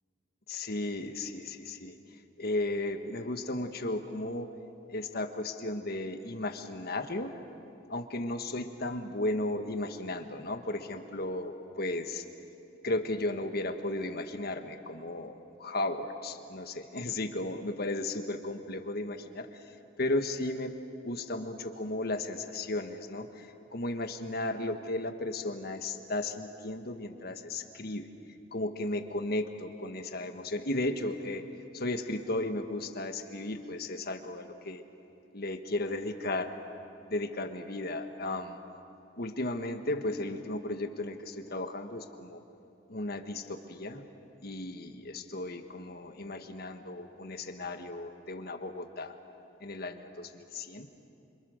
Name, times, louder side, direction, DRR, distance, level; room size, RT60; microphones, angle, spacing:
voice 1, 0.5-2.0 2.4-4.5 4.9-7.3 7.9-12.2 12.8-15.3 15.6-20.7 21.0-28.1 28.5-31.4 31.7-34.8 35.3-36.5 37.1-38.6 39.2-42.4 42.9-44.1 44.4-49.2 49.6-50.9, left 2 dB, 55° left, 7 dB, 1.5 m, -35 dB
27.0 x 26.5 x 6.5 m, 2.8 s
head